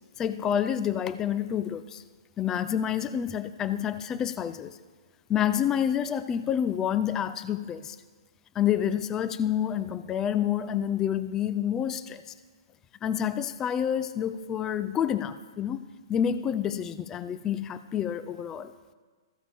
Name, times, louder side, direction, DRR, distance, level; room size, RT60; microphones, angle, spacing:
voice 1, 0.2-2.0 2.4-4.8 5.3-8.0 8.5-12.2 13.0-15.8 16.1-18.7, left 9 dB, 20° left, 13 dB, 0.4 m, -28 dB
14.5 x 8.7 x 3.4 m, 1.4 s
hypercardioid pair, 120°, 2 cm